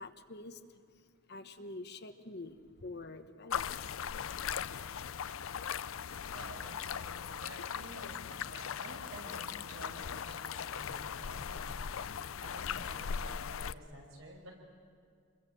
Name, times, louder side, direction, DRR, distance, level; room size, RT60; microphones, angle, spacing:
voice 1, 0.0-4.9, left 2 dB, 55° left, 8 dB, 1.2 m, -48 dB
sound 1, 3.5-13.7, left 7 dB, 90° left, 0.5 m, -39 dB
voice 2, 6.3-14.5, right 1 dB, 80° right, 1 dB, 6.0 m, -51 dB
27.0 x 21.5 x 7.7 m, 2.3 s
head